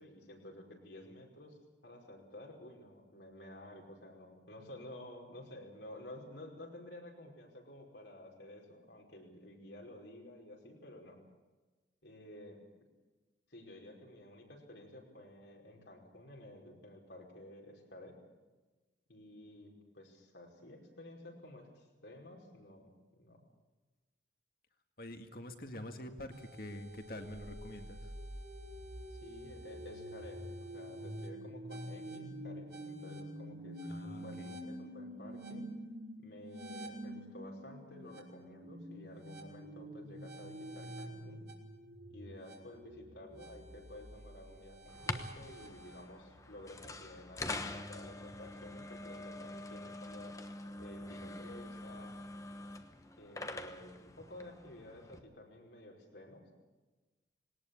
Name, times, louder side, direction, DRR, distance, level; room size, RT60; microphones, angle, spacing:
voice 1, 0.0-1.6 1.8-11.2 12.0-12.6 13.5-18.2 19.1-23.4 29.1-35.7 36.2-41.4 42.1-50.4 50.8-52.1 53.2-56.5, left 1 dB, 80° left, 0 dB, 5.4 m, -52 dB
voice 2, 25.0-28.1 33.8-34.6, left 1 dB, 55° left, 6 dB, 2.0 m, -46 dB
sound 1, 26.3-46.1, equal, 70° right, 3.5 m, -47 dB
sound 2, 44.9-55.2, left 2 dB, 20° left, 1.1 m, -45 dB
20.5 x 18.5 x 8.7 m, 1.2 s
head